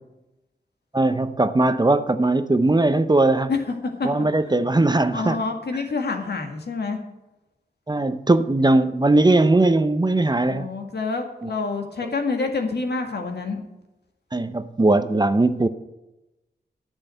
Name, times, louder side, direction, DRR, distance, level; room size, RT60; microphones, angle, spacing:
voice 1, 0.9-3.5 4.0-5.4 7.9-10.7 11.4-11.5 14.3-15.7, right 2 dB, 25° right, 11 dB, 0.7 m, -19 dB
voice 2, 5.1-7.0 10.5-13.6, left 4 dB, 75° left, 3 dB, 1.9 m, -27 dB
10.0 x 6.4 x 9.0 m, 0.97 s
wide cardioid pair, 70°, 17 cm